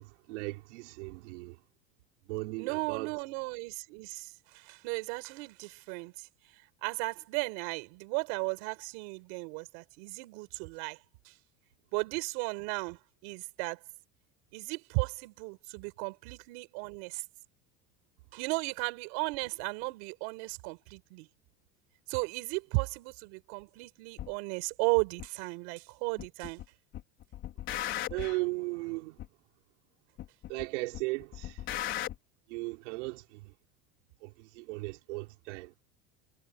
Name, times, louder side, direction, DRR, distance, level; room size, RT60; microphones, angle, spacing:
voice 1, 0.0-1.6 2.3-3.1 28.1-29.2 30.5-31.6 32.5-33.5 34.2-35.7, right 24 dB, 75° right, 4.9 m, -37 dB
voice 2, 2.6-11.3 11.9-13.8 14.5-17.2 18.3-21.3 22.1-26.6, right 31 dB, 55° right, 5.5 m, -35 dB
sound 1, 24.2-24.3 25.2-25.3 26.2-26.7 26.9-28.4 29.2-29.3 30.2-30.7 30.9-32.2, left 12 dB, 35° left, 4.5 m, -37 dB
cardioid pair, 175°, 36 cm